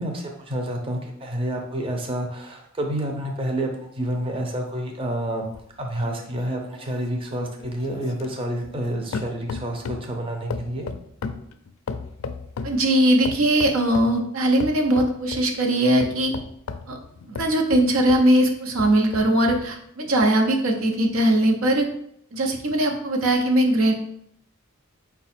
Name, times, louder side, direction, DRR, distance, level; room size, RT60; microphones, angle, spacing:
voice 1, 0.0-5.5 5.8-10.9, right 1 dB, 25° right, 2 dB, 0.6 m, -29 dB
sound 1, 5.5-8.9 9.1-10.1 10.5-12.8 13.2-14.2 14.6-15.5 16.0-18.3 18.7-19.7 20.2-20.3, left 4 dB, 80° left, 0.4 m, -35 dB
voice 2, 12.6-16.3 16.9-17.0 17.4-21.9 22.3-23.9, right 1 dB, 85° right, 3 dB, 0.7 m, -20 dB
4.7 x 2.3 x 4.2 m, 0.70 s
head